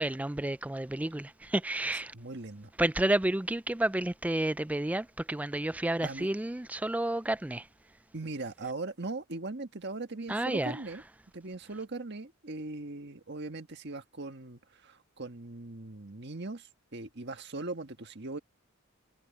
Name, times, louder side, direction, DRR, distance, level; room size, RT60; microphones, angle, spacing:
voice 1, 0.0-2.1 2.8-7.6 10.3-10.8, right 1 dB, 5° right, 0.3 m, -30 dB
voice 2, 2.1-2.7 6.0-6.3 8.1-11.0 11.3-18.4, right 2 dB, 55° right, 1.6 m, -40 dB
head